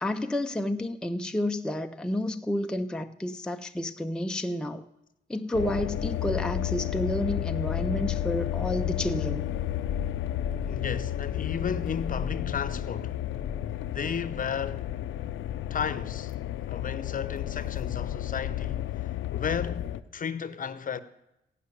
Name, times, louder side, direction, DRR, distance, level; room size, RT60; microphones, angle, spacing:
voice 1, 0.0-4.9 5.3-9.5, left 1 dB, 5° left, 0.5 m, -30 dB
sound 1, 5.5-20.0, left 11 dB, 90° left, 0.5 m, -32 dB
voice 2, 10.7-13.2 13.9-14.9 15.7-16.3 16.7-21.0, left 7 dB, 45° left, 0.8 m, -34 dB
15.5 x 5.8 x 9.7 m
cardioid pair, 105°, 20 cm